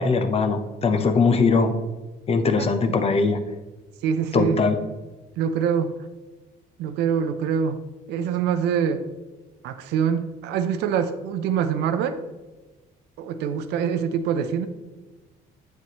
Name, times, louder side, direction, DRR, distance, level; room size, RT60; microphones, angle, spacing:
voice 1, 0.0-1.7 2.3-3.4 4.3-4.8, left 4 dB, 35° left, 8 dB, 0.8 m, -21 dB
voice 2, 4.0-4.6 5.4-6.0 6.8-7.8 8.1-9.1 9.6-12.2 13.2-14.7, right 7 dB, 85° right, 11 dB, 0.6 m, -24 dB
8.1 x 7.4 x 3.0 m, 1.2 s
cardioid pair, 110°, 17 cm